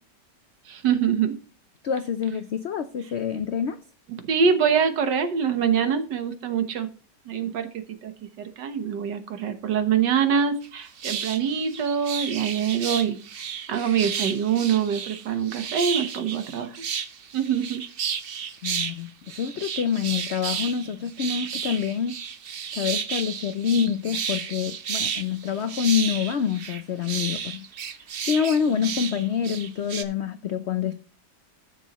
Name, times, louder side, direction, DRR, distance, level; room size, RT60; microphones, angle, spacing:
voice 1, 0.7-1.3 4.2-6.9 7.3-8.1 8.4-16.7 17.3-17.8, right 7 dB, 80° right, 9 dB, 1.8 m, -24 dB
voice 2, 1.8-3.8 18.6-22.1 22.7-31.0, left 7 dB, 80° left, 11 dB, 0.6 m, -27 dB
sound 1, 10.6-10.7 11.0-19.0 19.3-30.0, right 7 dB, 55° right, 0.6 m, -32 dB
13.0 x 6.9 x 3.0 m, 0.38 s
omnidirectional pair, 1.8 m